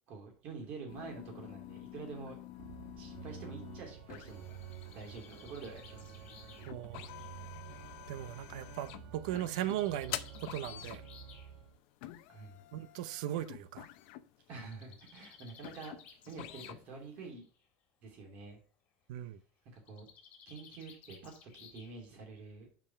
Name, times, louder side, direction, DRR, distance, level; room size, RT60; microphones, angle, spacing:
voice 1, 0.1-2.4 3.0-4.5 4.9-6.1 12.3-12.6 14.5-16.0 16.3-17.5 18.0-18.6 19.7-20.1 20.4-22.7, right 4 dB, 45° right, 2.8 m, -47 dB
sound 1, 0.9-17.3, left 15 dB, 65° left, 0.6 m, -49 dB
Organ, 2.6-11.8, right 9 dB, 60° right, 1.5 m, -50 dB
Bird, 4.3-8.1 9.1-11.5 12.6-12.7 13.0-13.1 13.3-13.4 14.5-16.9 17.2-17.7 19.8-22.2, left 7 dB, 35° left, 1.8 m, -58 dB
voice 2, 6.6-7.1 8.1-11.0 12.7-13.9 19.1-19.4, right 12 dB, 80° right, 0.6 m, -38 dB
5.5 x 5.2 x 5.7 m
cardioid pair, 160°, 4 cm